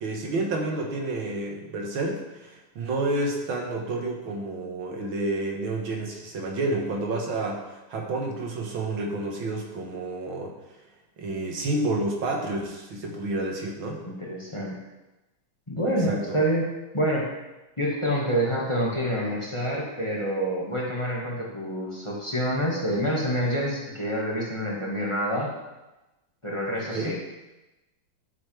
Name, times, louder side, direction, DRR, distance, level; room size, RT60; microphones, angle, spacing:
voice 1, 0.0-10.6 11.2-14.0 16.1-16.4 26.9-27.2, right 2 dB, 90° right, 1 dB, 2.2 m, -30 dB
voice 2, 14.0-14.8 15.7-16.7 16.9-17.3 17.8-25.5 26.4-27.1, equal, 15° left, -4 dB, 1.7 m, -27 dB
11.5 x 8.0 x 3.5 m, 1.0 s
omnidirectional pair, 2.1 m